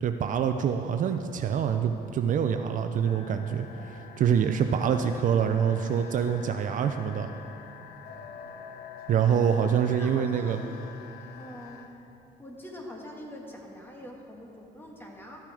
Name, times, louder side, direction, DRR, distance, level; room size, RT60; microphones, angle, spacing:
voice 1, 0.0-7.3 9.1-10.6, right 8 dB, 50° right, 7 dB, 0.5 m, -26 dB
sound 1, 3.0-11.9, left 7 dB, 70° left, 0.8 m, -47 dB
voice 2, 9.1-9.4 9.9-10.6 11.4-11.9 12.4-15.4, equal, 15° left, 0 dB, 1.7 m, -44 dB
13.5 x 7.4 x 4.9 m, 2.8 s
cardioid pair, 110°, 17 cm